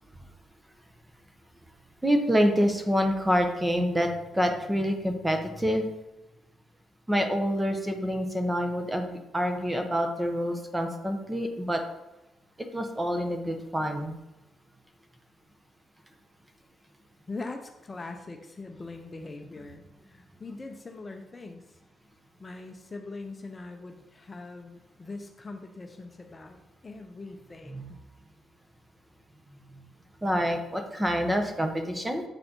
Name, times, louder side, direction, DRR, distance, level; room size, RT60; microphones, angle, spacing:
voice 1, 2.0-5.8 7.1-11.8 12.7-14.2 27.7-27.8 30.2-32.2, equal, 10° right, 5 dB, 1.0 m, -27 dB
voice 2, 17.3-21.8 22.4-26.6 26.8-28.0, left 3 dB, 25° left, 4 dB, 0.7 m, -42 dB
7.8 x 4.1 x 4.4 m, 0.95 s
cardioid pair, 90°, 0 cm